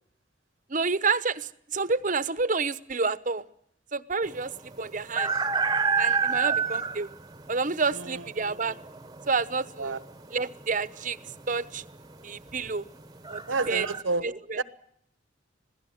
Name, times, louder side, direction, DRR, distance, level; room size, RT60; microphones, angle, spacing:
voice 1, 0.7-3.4 3.9-5.3 6.0-7.1 7.5-8.8 9.3-10.0 10.3-11.2 11.5-11.8 12.2-12.9 13.3-13.4 13.7-13.9 14.2-14.6, right 4 dB, 45° right, 1.0 m, -29 dB
sound 1, 4.2-14.0, right 5 dB, 20° right, 1.1 m, -29 dB
voice 2, 7.9-8.4 9.8-10.0 13.5-14.3 14.6-14.7, right 3 dB, 80° right, 1.3 m, -30 dB
26.5 x 17.5 x 7.9 m
head